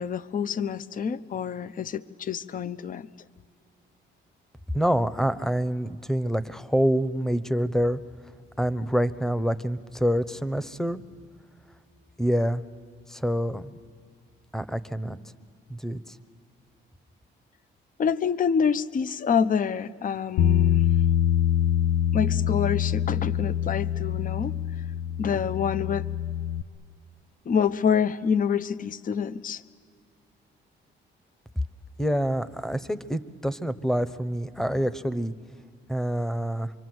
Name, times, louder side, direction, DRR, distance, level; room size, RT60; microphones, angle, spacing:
voice 1, 0.0-3.1 18.0-20.9 22.1-24.6 25.2-26.1 27.5-29.6, left 7 dB, 45° left, 16 dB, 0.7 m, -27 dB
voice 2, 4.7-8.0 8.6-11.0 12.2-12.6 13.1-13.7 14.5-15.2 15.7-16.2 32.0-35.3 35.9-36.7, equal, ahead, 15 dB, 0.9 m, -26 dB
Bass guitar, 20.4-26.6, left 10 dB, 85° left, 0.7 m, -24 dB
26.0 x 24.0 x 7.9 m, 2.2 s
cardioid pair, 90°, 20 cm